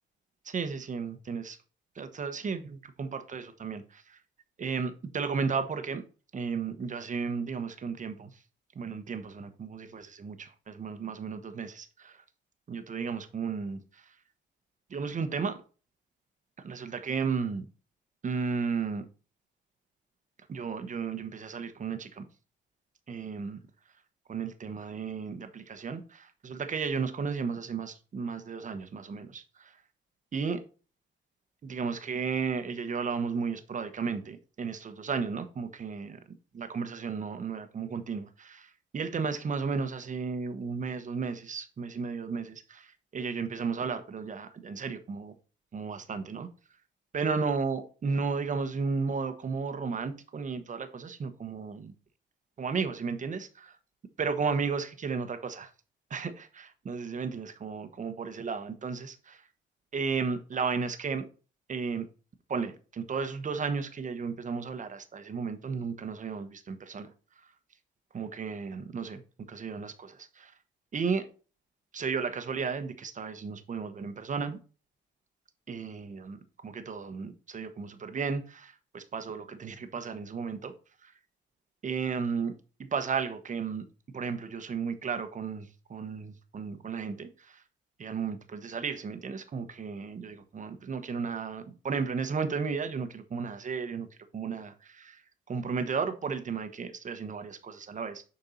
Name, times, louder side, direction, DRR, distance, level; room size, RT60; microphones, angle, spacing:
voice 1, 0.4-1.6 1.9-4.2 4.6-6.0 6.3-8.4 8.7-12.2 12.7-14.1 14.9-15.6 16.6-17.7 18.2-19.1 20.5-22.2 23.1-23.6 24.3-29.8 30.3-30.6 31.6-36.2 36.5-45.3 45.7-46.5 47.1-51.9 52.6-53.8 54.2-55.7 56.1-59.5 59.9-61.2 61.7-62.1 62.5-67.1 68.1-69.2 69.5-70.5 70.9-71.3 71.9-74.6 75.7-76.4 76.6-80.7 81.0-81.1 81.8-82.5 82.8-83.8 84.1-87.6 88.0-94.1 94.3-95.2 95.5-98.2, right 5 dB, 40° right, 1.1 m, -34 dB
6.9 x 4.5 x 4.1 m
cardioid pair, 90°, 20 cm